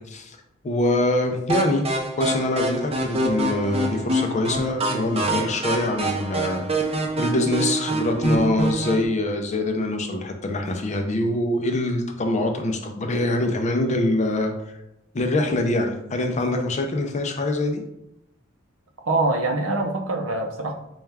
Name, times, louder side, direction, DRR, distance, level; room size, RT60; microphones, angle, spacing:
voice 1, 0.6-1.9 2.2-14.5 15.1-17.8, left 1 dB, 35° left, 4 dB, 0.5 m, -24 dB
sound 1, 1.5-9.1, right 1 dB, 30° right, 0.5 m, -26 dB
voice 2, 19.0-20.7, right 2 dB, 75° right, 4 dB, 0.6 m, -24 dB
4.2 x 2.3 x 3.4 m, 0.85 s
head